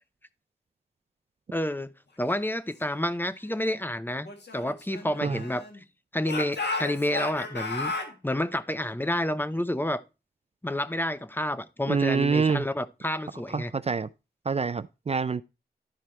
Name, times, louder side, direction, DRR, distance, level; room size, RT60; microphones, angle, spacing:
voice 1, 1.5-1.9 2.2-4.3 4.5-5.6 6.1-7.9 8.2-10.0 10.6-13.7, left 1 dB, 10° left, 0.7 m, -29 dB
Speech / Shout, 4.2-5.8 6.2-8.1, left 3 dB, 80° left, 1.9 m, -34 dB
voice 2, 11.9-12.6 13.5-14.1 14.5-15.4, right 5 dB, 35° right, 0.4 m, -26 dB
11.5 x 4.7 x 4.3 m
wide cardioid pair, 65°, 17 cm